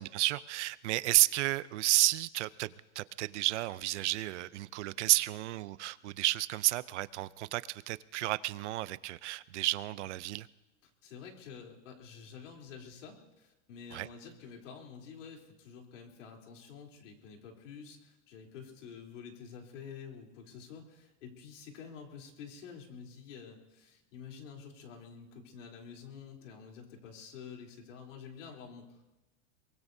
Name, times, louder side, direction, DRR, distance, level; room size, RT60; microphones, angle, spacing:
voice 1, 0.0-10.5 13.9-14.1, right 17 dB, 70° right, 18 dB, 0.6 m, -31 dB
voice 2, 10.8-29.1, left 6 dB, 85° left, 0 dB, 3.6 m, -49 dB
23.0 x 23.0 x 2.7 m, 1.0 s
supercardioid pair, 180°, 36 cm